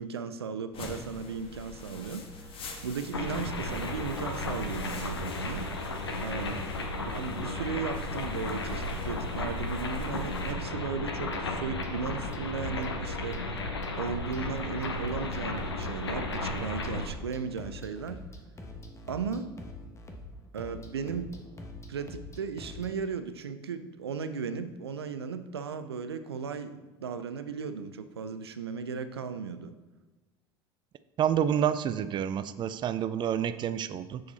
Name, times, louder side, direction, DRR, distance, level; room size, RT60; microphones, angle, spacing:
voice 1, 0.0-5.7 6.2-6.6 7.0-13.4 13.9-18.2 19.1-19.5 20.5-21.4 21.9-29.7, right 6 dB, 85° right, 11 dB, 0.5 m, -36 dB
sound 1, 0.7-10.5, left 1 dB, 45° left, 1.4 m, -44 dB
sound 2, 3.1-17.1, left 2 dB, 85° left, 0.9 m, -34 dB
sound 3, 11.0-23.0, left 1 dB, 20° left, 1.2 m, -45 dB
voice 2, 31.2-34.2, right 9 dB, 35° right, 13 dB, 0.5 m, -28 dB
6.9 x 6.5 x 4.1 m, 1.2 s
hypercardioid pair, 70°, 13 cm